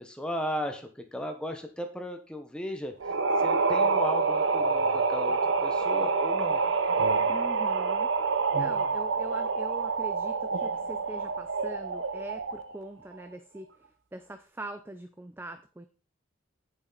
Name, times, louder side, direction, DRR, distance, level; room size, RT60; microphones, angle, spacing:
voice 1, 0.0-6.6, equal, 5° left, 4 dB, 0.9 m, -36 dB
sound 1, 3.0-12.7, right 4 dB, 70° right, 0.7 m, -27 dB
voice 2, 7.3-8.1 8.6-13.8 14.1-15.9, right 1 dB, 10° right, 9 dB, 0.4 m, -42 dB
8.3 x 7.1 x 4.0 m, 0.36 s
head